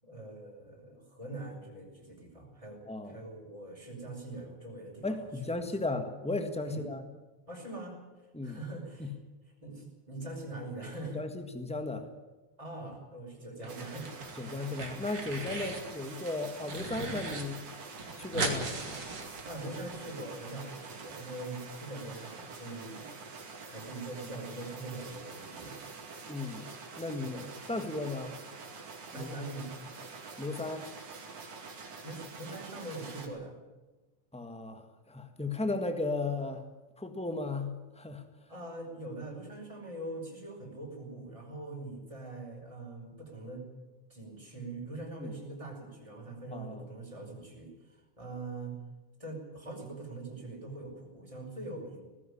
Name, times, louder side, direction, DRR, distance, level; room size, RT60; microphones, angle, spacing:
voice 1, 0.0-5.2 5.5-5.7 6.6-6.8 7.5-8.0 8.4-9.1 9.6-11.2 12.6-14.1 14.4-14.6 19.4-23.2 23.7-25.8 27.2-27.5 29.1-29.7 32.0-33.5 38.5-43.7 44.1-48.7 49.2-52.0, right 2 dB, 10° right, 0 dB, 5.3 m, -43 dB
voice 2, 2.9-3.2 5.0-7.1 8.3-8.6 9.0-9.1 11.0-12.1 14.4-17.6 18.2-18.7 26.3-28.3 29.1-29.3 30.4-30.9 34.3-36.6 37.0-38.2 45.2-45.3 46.5-46.9, left 2 dB, 5° left, 7 dB, 0.4 m, -35 dB
sound 1, 13.6-14.3 14.6-15.9 16.2-17.4 17.7-17.8 18.0-19.9, right 2 dB, 35° right, 3.5 m, -37 dB
sound 2, 13.7-33.3, right 4 dB, 65° right, 4.1 m, -46 dB
18.5 x 16.0 x 9.9 m, 1.2 s
omnidirectional pair, 3.4 m